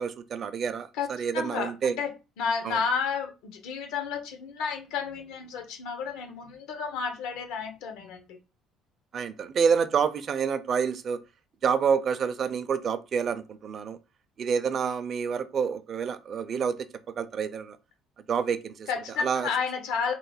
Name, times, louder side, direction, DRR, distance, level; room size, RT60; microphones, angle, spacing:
voice 1, 0.0-1.9 2.6-2.8 9.1-11.2 11.6-14.0 14.4-16.8 17.2-17.8 18.3-18.9 19.2-19.5, right 6 dB, 40° right, 0.4 m, -28 dB
voice 2, 1.3-8.4 18.9-20.1, left 6 dB, 85° left, 0.9 m, -31 dB
3.0 x 2.1 x 3.9 m
cardioid pair, 140°, 0 cm